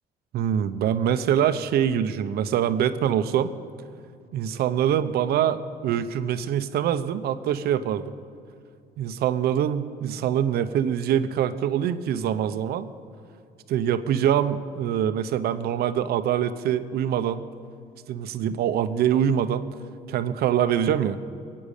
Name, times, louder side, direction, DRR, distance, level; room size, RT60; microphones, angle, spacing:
voice 1, 0.3-3.5 4.3-8.1 9.0-12.9 13.7-17.4 18.1-19.7 20.1-21.2, right 9 dB, 70° right, 12 dB, 0.8 m, -24 dB
23.0 x 8.7 x 6.7 m, 2.4 s
cardioid pair, 110°, 17 cm